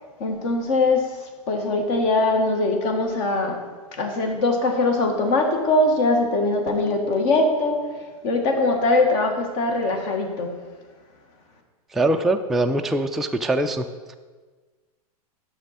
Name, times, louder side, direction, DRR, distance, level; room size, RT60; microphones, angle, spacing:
voice 1, 0.2-1.2 1.5-3.6 4.0-7.8 8.2-10.6, left 2 dB, 50° left, 3 dB, 1.6 m, -21 dB
voice 2, 11.9-13.8, right 2 dB, ahead, 4 dB, 0.3 m, -22 dB
11.0 x 6.2 x 4.1 m, 1.4 s
hypercardioid pair, 110°, 20 cm